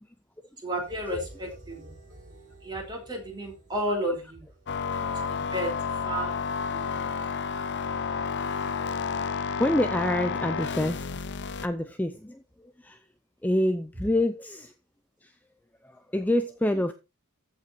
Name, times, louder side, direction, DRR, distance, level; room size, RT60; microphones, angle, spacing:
voice 1, 0.6-1.9 2.6-4.5 5.0-5.8 6.0-7.2, equal, 20° right, 4.5 m, -33 dB
sound 1, 0.9-8.7 9.1-9.3, right 2 dB, 40° right, 6.2 m, -51 dB
sound 2, 4.7-11.7, left 5 dB, 55° left, 0.7 m, -31 dB
voice 2, 9.4-11.3 11.6-13.0 13.4-14.7 15.2-15.3 15.8-16.9, left 1 dB, 10° left, 0.6 m, -27 dB
14.5 x 5.8 x 4.4 m
head